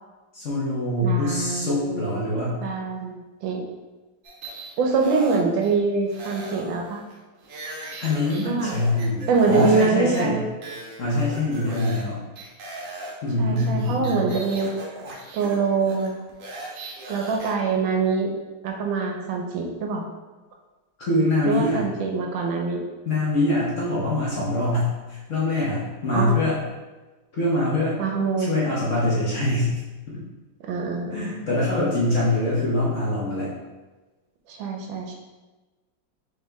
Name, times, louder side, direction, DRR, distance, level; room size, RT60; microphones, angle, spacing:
voice 1, 0.3-2.6 8.0-10.4 11.0-12.2 13.2-14.3 21.0-21.8 23.1-26.6 27.4-28.0 28.4-29.7 30.1-30.2 31.1-33.5, left 2 dB, 50° left, -7 dB, 1.0 m, -24 dB
voice 2, 1.0-2.2 2.6-3.6 4.8-7.0 8.4-8.8 9.3-10.4 13.4-14.7 15.3-16.1 17.1-18.3 18.6-20.1 21.4-22.8 26.1-26.4 28.0-28.5 30.6-31.3 34.5-35.2, right 4 dB, 75° right, 2 dB, 1.3 m, -24 dB
sound 1, 4.2-5.7 6.1-9.9 10.1-10.2 10.6-12.1 12.4-17.5, right 2 dB, 60° right, 0.9 m, -38 dB
4.6 x 3.2 x 3.4 m, 1.2 s
omnidirectional pair, 2.2 m